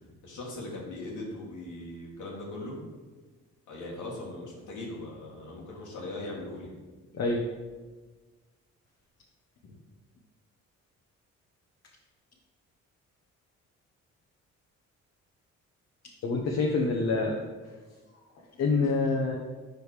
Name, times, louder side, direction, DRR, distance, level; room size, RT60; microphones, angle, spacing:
voice 1, 0.2-2.8 3.7-6.7 9.6-9.7, left 2 dB, 85° left, -4 dB, 1.6 m, -39 dB
voice 2, 16.2-17.4 18.6-19.4, left 3 dB, 55° left, -1 dB, 0.9 m, -26 dB
5.2 x 4.7 x 4.9 m, 1.3 s
cardioid pair, 90°, 30 cm